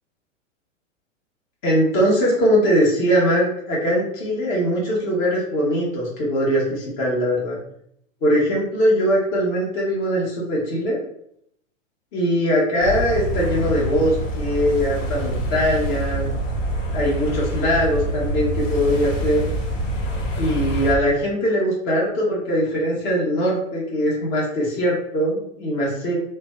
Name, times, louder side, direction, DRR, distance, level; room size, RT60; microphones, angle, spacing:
voice 1, 1.6-7.6 8.2-11.0 12.1-16.3 16.9-19.5 20.4-26.2, equal, 35° left, -5 dB, 1.1 m, -21 dB
sound 1, 12.8-20.9, right 1 dB, 70° left, 0.8 m, -26 dB
2.6 x 2.1 x 3.5 m, 0.71 s
hypercardioid pair, 105°, 38 cm